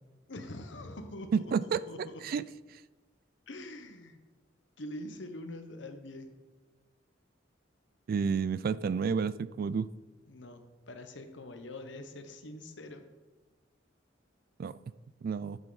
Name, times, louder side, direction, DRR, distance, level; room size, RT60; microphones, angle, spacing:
voice 1, 0.3-1.5 1.9-2.2 3.5-4.2 4.8-6.3 10.3-13.0, left 1 dB, 70° left, 7 dB, 1.1 m, -44 dB
voice 2, 1.3-2.4 8.1-9.9 14.6-14.8 15.2-15.6, right 6 dB, 50° right, 17 dB, 0.3 m, -30 dB
11.5 x 7.2 x 4.0 m, 1.3 s
head